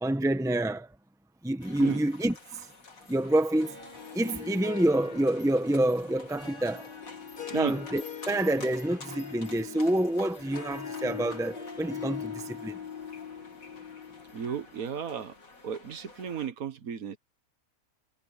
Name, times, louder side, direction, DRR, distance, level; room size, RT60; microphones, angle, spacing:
voice 1, 0.0-0.9 1.4-2.7 3.1-3.7 4.1-6.9 7.5-12.8, right 1 dB, 5° right, 1.1 m, -27 dB
sound 1, 1.6-16.5, left 3 dB, 70° left, 3.1 m, -50 dB
Harp, 3.6-14.7, left 7 dB, 35° left, 2.0 m, -42 dB
voice 2, 14.3-15.4 15.6-17.2, right 8 dB, 75° right, 1.6 m, -34 dB
omnidirectional pair, 1.5 m